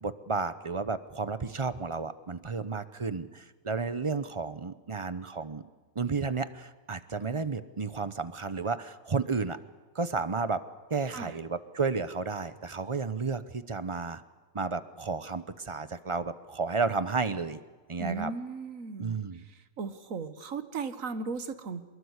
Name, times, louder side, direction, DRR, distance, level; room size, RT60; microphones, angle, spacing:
voice 1, 0.0-5.6 5.9-9.6 9.9-10.6 10.9-14.2 14.5-17.6 17.9-18.3 19.0-19.4, right 4 dB, 30° right, 13 dB, 0.7 m, -32 dB
voice 2, 18.0-19.2 19.8-21.8, right 4 dB, 70° right, 11 dB, 1.7 m, -36 dB
24.0 x 21.0 x 8.1 m, 1.4 s
omnidirectional pair, 1.5 m